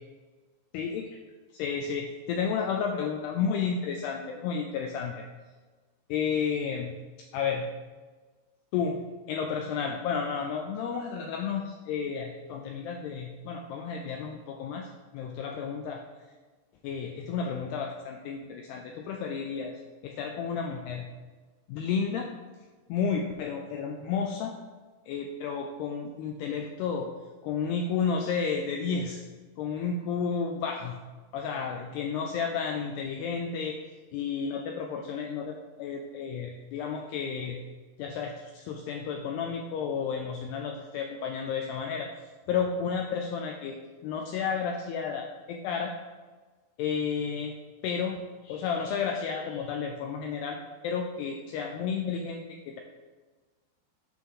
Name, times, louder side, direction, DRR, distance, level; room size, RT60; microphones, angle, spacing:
voice 1, 0.7-1.2 1.5-5.2 6.1-6.9 7.3-7.7 8.7-16.0 16.8-19.7 20.0-21.0 21.7-22.3 22.9-24.5 25.1-27.1 27.4-29.2 29.6-31.0 31.3-33.8 34.1-37.6 38.0-42.1 42.5-43.8 44.0-45.9 46.8-47.5 47.8-48.2 48.4-50.6 50.8-52.8, left 6 dB, 85° left, 2 dB, 2.3 m, -32 dB
9.0 x 6.3 x 3.7 m, 1.3 s
omnidirectional pair, 5.3 m